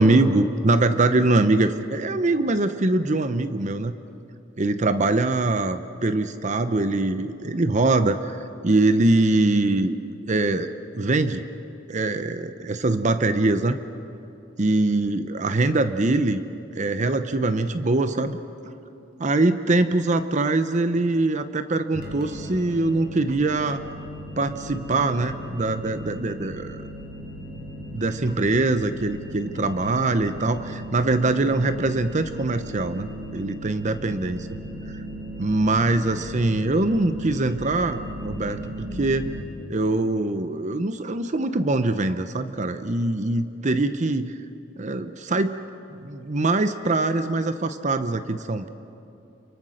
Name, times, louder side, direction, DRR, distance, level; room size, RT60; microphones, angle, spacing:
voice 1, 0.0-3.9 4.6-8.4 8.6-10.0 10.3-10.7 10.9-11.4 11.9-13.8 14.6-16.4 16.7-18.4 19.2-23.8 24.4-26.8 27.9-34.4 35.4-39.3 39.7-44.4 44.8-45.6 46.0-48.7, right 2 dB, 40° right, 10 dB, 0.8 m, -23 dB
sound 1, 21.9-39.4, equal, 65° right, 4.8 m, -37 dB
29.5 x 24.0 x 6.5 m, 2.8 s
head